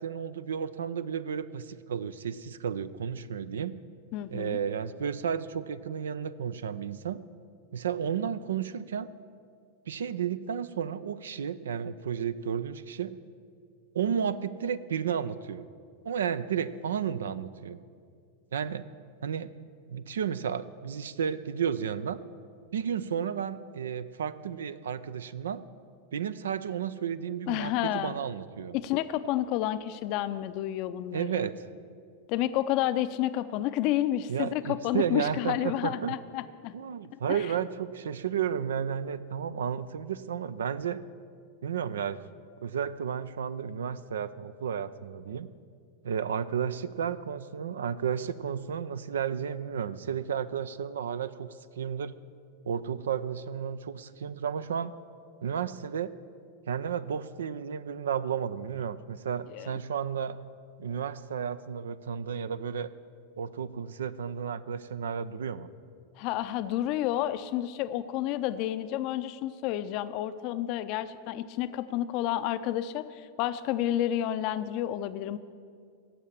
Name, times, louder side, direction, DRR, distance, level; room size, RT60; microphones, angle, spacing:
voice 1, 0.0-3.8 4.3-7.2 7.7-9.1 9.9-13.2 13.9-15.7 16.0-17.8 18.5-18.8 19.2-19.5 19.9-22.2 22.7-25.6 26.1-28.8 31.1-31.7 34.3-36.2 36.7-41.0 41.6-42.2 42.6-45.5 46.0-52.2 52.6-54.9 55.4-56.1 56.7-60.4 60.8-62.9 63.4-65.7, right 8 dB, 65° right, 15 dB, 0.4 m, -32 dB
voice 2, 4.1-4.6 27.5-28.2 28.7-31.5 32.3-36.7 37.3-37.5 59.5-59.7 66.2-75.4, left 13 dB, 45° left, 13 dB, 0.5 m, -30 dB
16.5 x 7.3 x 7.2 m, 2.2 s
figure-of-eight pair, 90°, 0 cm